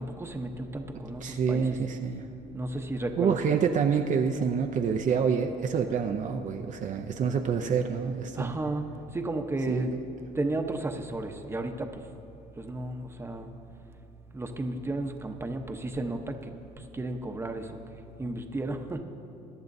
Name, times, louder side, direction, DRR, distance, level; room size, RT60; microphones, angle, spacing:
voice 1, 0.0-1.8 2.5-3.6 8.4-8.9 9.1-9.9 10.4-11.9 12.6-13.5 14.3-16.3 16.9-17.7 18.2-19.0, right 2 dB, 15° right, 4 dB, 0.9 m, -33 dB
voice 2, 1.2-2.3 3.2-8.6 9.7-9.9, right 6 dB, 45° right, 4 dB, 0.6 m, -27 dB
22.0 x 11.0 x 2.7 m, 2.7 s
cardioid pair, 110°, 17 cm